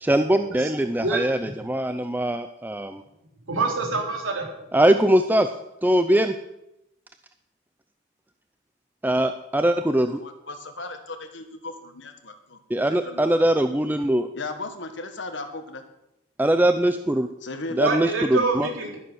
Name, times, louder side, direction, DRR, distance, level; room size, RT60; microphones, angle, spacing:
voice 1, 0.0-3.0 4.7-5.5 5.8-6.3 9.0-10.2 12.7-14.3 16.4-17.3 17.7-18.7, right 1 dB, 10° right, 9 dB, 0.4 m, -21 dB
voice 2, 3.5-4.5 17.8-19.0, right 3 dB, 70° right, 1 dB, 3.5 m, -25 dB
voice 3, 10.2-12.6 12.9-13.3 14.3-15.8 17.4-17.8, left 2 dB, 60° left, 7 dB, 1.6 m, -36 dB
12.0 x 11.0 x 6.3 m, 0.85 s
head